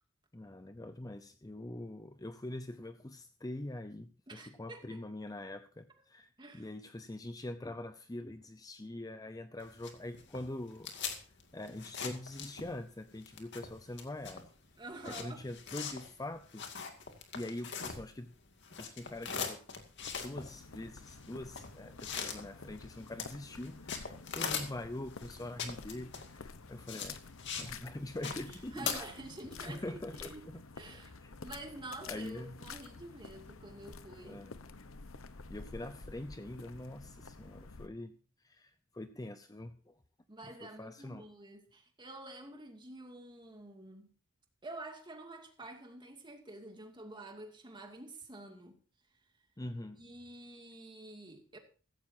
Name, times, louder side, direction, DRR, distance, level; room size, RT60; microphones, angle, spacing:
voice 1, 0.3-10.9 11.5-14.5 15.0-16.7 17.3-18.3 18.8-19.6 20.2-27.2 27.6-28.9 29.7-30.6 30.9-31.3 32.1-32.6 34.2-34.5 35.5-38.1 38.4-39.9 40.6-41.2 49.6-50.0, left 1 dB, 20° left, 0.7 m, -44 dB
voice 2, 4.3-5.0 6.4-6.7 14.8-15.4 28.2-30.4 30.8-34.4 40.3-44.1 44.6-48.8 49.9-51.6, right 2 dB, 20° right, 2.4 m, -48 dB
sound 1, 9.6-12.9 13.2-18.3 18.6-27.7 28.0-28.9, left 6 dB, 60° left, 2.3 m, -41 dB
sound 2, 20.0-37.9, left 4 dB, 75° left, 1.0 m, -50 dB
16.0 x 14.5 x 2.8 m
head